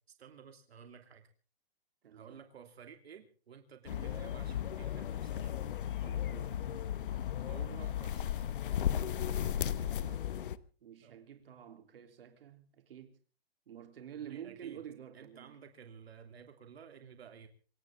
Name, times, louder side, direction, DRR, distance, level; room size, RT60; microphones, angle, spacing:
voice 1, 0.2-1.3 2.1-5.6 7.4-8.4 11.0-11.2 14.2-14.8 15.1-17.5, right 7 dB, 85° right, 3.1 m, -53 dB
voice 2, 2.0-2.4 6.0-6.6 9.7-10.3 10.8-13.2 13.7-15.6, right 9 dB, 65° right, 3.5 m, -49 dB
sound 1, 3.9-10.6, left 10 dB, 55° left, 1.0 m, -35 dB
27.0 x 14.0 x 3.7 m
hypercardioid pair, 170°, 30 cm